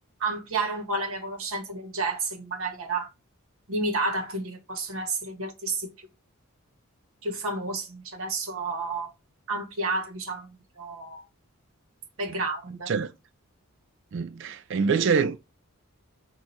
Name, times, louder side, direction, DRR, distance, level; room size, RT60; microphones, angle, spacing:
voice 1, 0.2-3.1 3.7-6.1 7.2-9.1 9.5-11.2 12.2-12.9, right 3 dB, 70° right, 1.1 m, -31 dB
voice 2, 14.1-15.4, right 5 dB, 55° right, 0.3 m, -25 dB
5.4 x 2.4 x 4.1 m
head